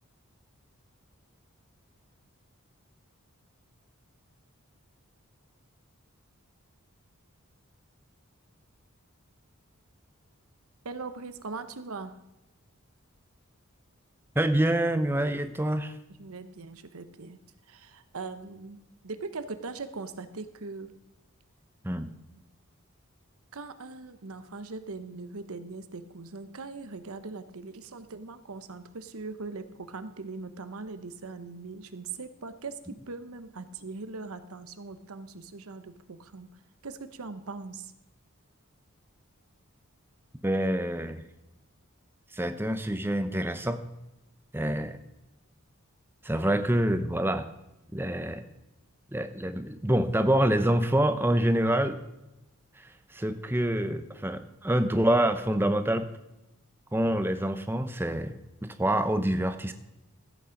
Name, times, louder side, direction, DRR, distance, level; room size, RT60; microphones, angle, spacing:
voice 1, 10.8-12.2 16.2-17.4 17.7-20.9 23.5-36.6 36.8-37.9, right 3 dB, 75° right, 11 dB, 0.9 m, -40 dB
voice 2, 14.3-15.9 21.8-22.1 40.4-41.2 42.3-43.8 44.5-45.0 46.2-47.5 47.9-48.4 49.1-52.0 52.8-56.1 56.9-58.4 58.6-59.7, right 1 dB, 10° right, 9 dB, 0.6 m, -26 dB
14.0 x 8.5 x 5.2 m, 0.94 s
head